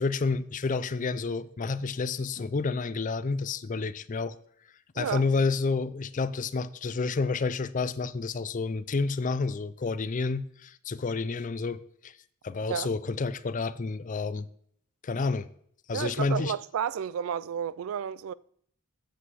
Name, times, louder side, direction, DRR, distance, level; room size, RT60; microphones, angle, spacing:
voice 1, 0.0-4.3 5.0-12.1 12.4-14.5 15.0-15.5 15.9-16.5, left 4 dB, 35° left, 0.4 m, -29 dB
voice 2, 15.9-18.3, right 8 dB, 70° right, 0.3 m, -32 dB
8.2 x 8.1 x 4.7 m
head